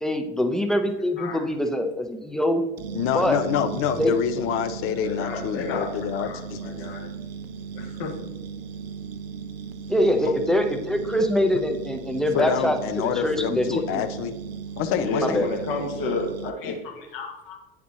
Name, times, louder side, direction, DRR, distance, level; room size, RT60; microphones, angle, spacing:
voice 1, 0.0-2.6 3.1-3.4 4.0-4.1 9.9-14.0 15.2-15.5, left 1 dB, ahead, 5 dB, 0.6 m, -24 dB
sound 1, 2.8-16.5, right 6 dB, 70° right, 0.5 m, -36 dB
voice 2, 2.9-6.9 10.2-10.3 12.3-14.4 14.8-15.5, left 8 dB, 45° left, 10 dB, 0.6 m, -27 dB
voice 3, 4.8-5.9 6.2-7.1 7.7-8.2 9.8-9.9 14.8-17.6, left 3 dB, 60° left, 1 dB, 1.4 m, -31 dB
9.3 x 4.2 x 2.8 m, 1.0 s
figure-of-eight pair, 65°, 31 cm